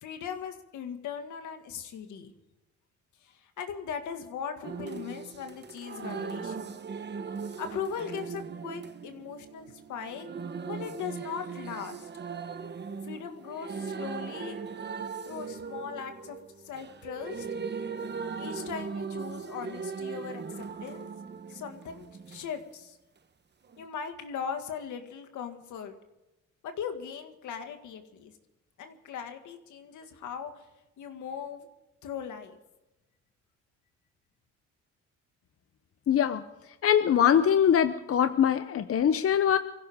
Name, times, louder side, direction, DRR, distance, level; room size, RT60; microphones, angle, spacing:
voice 1, 0.0-2.3 3.2-6.8 7.6-10.3 10.6-12.1 13.0-14.6 15.2-16.4 16.6-17.5 18.4-21.1 21.5-23.0 23.8-25.9 26.6-28.3 28.8-30.7 31.0-31.7 32.0-32.6, left 7 dB, 80° left, 6 dB, 2.1 m, -39 dB
sound 1, 4.6-22.5 23.7-23.8, right 5 dB, 35° right, 1.1 m, -39 dB
voice 2, 36.1-36.4 36.8-39.6, left 9 dB, 50° left, 10 dB, 0.8 m, -23 dB
24.5 x 16.0 x 3.7 m, 0.97 s
cardioid pair, 90°, 30 cm